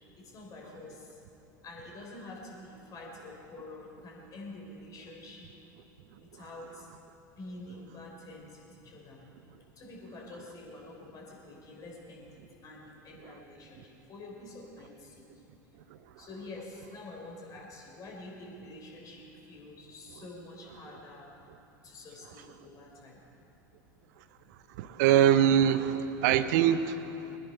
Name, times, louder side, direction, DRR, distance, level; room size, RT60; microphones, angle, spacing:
voice 1, 0.0-1.2 1.6-5.5 6.2-6.9 7.4-9.2 9.8-15.4 16.2-21.3 21.8-23.2, left 2 dB, 35° left, -2 dB, 4.1 m, -47 dB
voice 2, 24.8-27.4, right 10 dB, 60° right, 13 dB, 0.7 m, -24 dB
22.0 x 10.5 x 4.5 m, 2.9 s
figure-of-eight pair, 85°, 11 cm